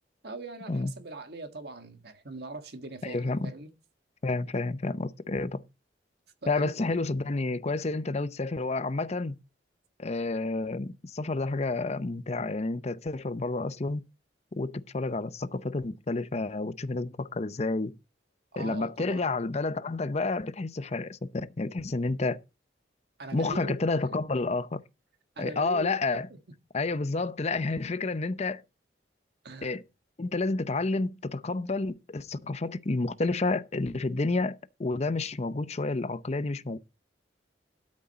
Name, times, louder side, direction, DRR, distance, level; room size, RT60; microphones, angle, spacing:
voice 1, 0.2-3.7 6.4-7.0 18.5-19.3 23.2-24.0 25.3-26.4 29.4-29.7, right 2 dB, 60° right, 1.5 m, -41 dB
voice 2, 3.0-3.5 4.2-5.6 6.5-9.4 10.0-14.1 14.5-18.0 18.6-22.4 23.3-24.8 25.4-26.3 26.7-28.6 29.6-29.8 30.2-36.8, left 3 dB, 35° left, 0.6 m, -30 dB
12.5 x 6.4 x 4.2 m
head